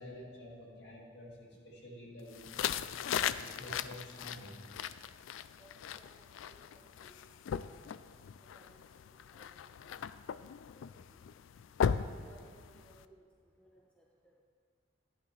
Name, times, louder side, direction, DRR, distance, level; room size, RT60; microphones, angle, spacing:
voice 1, 0.0-2.8 3.3-4.7, left 1 dB, 55° left, -3 dB, 2.2 m, -49 dB
sound 1, 2.3-13.0, left 8 dB, 80° left, 0.3 m, -38 dB
voice 2, 5.6-8.1 8.4-8.8 9.1-9.5 9.8-9.9 10.2-11.2 12.0-13.3 13.6-14.4, right 1 dB, 5° left, -2 dB, 0.8 m, -64 dB
12.0 x 10.0 x 3.3 m, 2.2 s
head